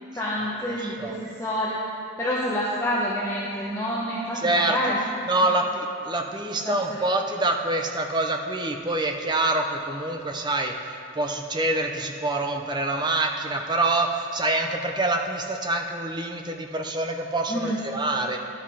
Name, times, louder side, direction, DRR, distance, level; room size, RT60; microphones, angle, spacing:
voice 1, 0.1-1.8 2.2-5.1 5.4-5.5 6.6-7.0 17.5-17.8, equal, 15° left, -6 dB, 0.8 m, -28 dB
voice 2, 0.8-1.2 4.4-4.8 5.3-18.4, right 2 dB, 20° right, 3 dB, 0.5 m, -26 dB
11.5 x 5.8 x 4.9 m, 2.4 s
head